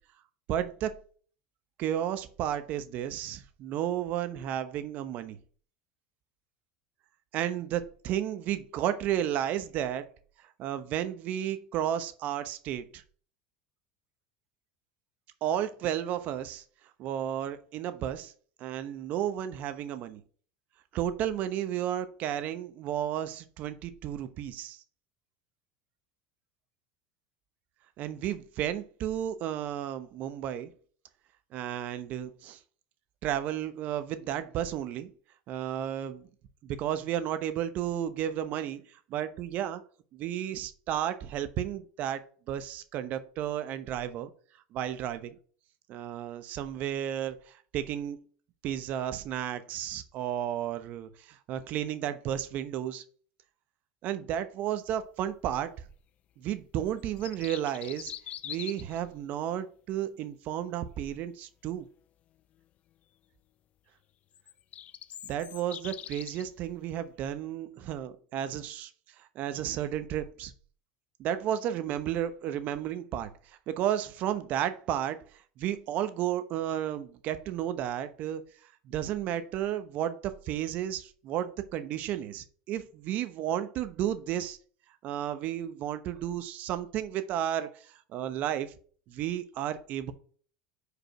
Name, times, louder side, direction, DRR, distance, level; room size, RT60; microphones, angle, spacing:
voice 1, 0.5-1.0 1.8-5.4 7.3-10.1 10.6-13.0 15.4-16.6 17.0-18.3 18.6-20.2 20.9-24.8 28.0-30.7 31.5-32.6 33.2-35.1 35.5-36.3 36.6-39.8 40.1-44.3 44.7-45.4 45.9-48.3 48.6-53.0 54.0-55.8 56.4-58.1 58.4-61.9 65.2-68.9 69.2-70.5 71.2-75.2 75.6-78.4 78.8-84.6 85.0-88.7 89.1-90.1, right 11 dB, 50° right, 1.0 m, -33 dB
sound 1, 57.0-59.0 64.3-66.4, left 11 dB, 40° left, 0.4 m, -43 dB
5.0 x 4.9 x 6.0 m
supercardioid pair, 115°, 3 cm